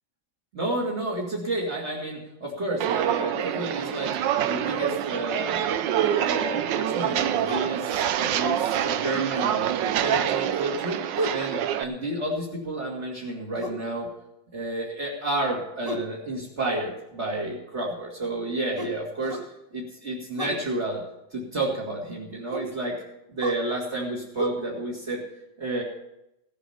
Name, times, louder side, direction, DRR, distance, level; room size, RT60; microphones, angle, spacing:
voice 1, 0.5-4.2 4.4-9.7 10.0-11.0 11.3-14.1 14.5-19.4 19.7-21.0 21.3-23.0 23.3-25.2 25.6-25.8, right 2 dB, 35° right, -5 dB, 2.6 m, -30 dB
Walk footsteps, 2.8-11.8, right 10 dB, 70° right, 1.3 m, -26 dB
sound 1, 7.5-7.7 9.3-10.0 11.1-11.5 13.6-13.9 15.8-16.1 18.8-19.5 20.3-20.6 22.5-22.7 23.4-23.6 24.4-24.5, right 1 dB, 10° right, 1.3 m, -33 dB
17.0 x 8.3 x 5.7 m, 0.85 s
omnidirectional pair, 2.2 m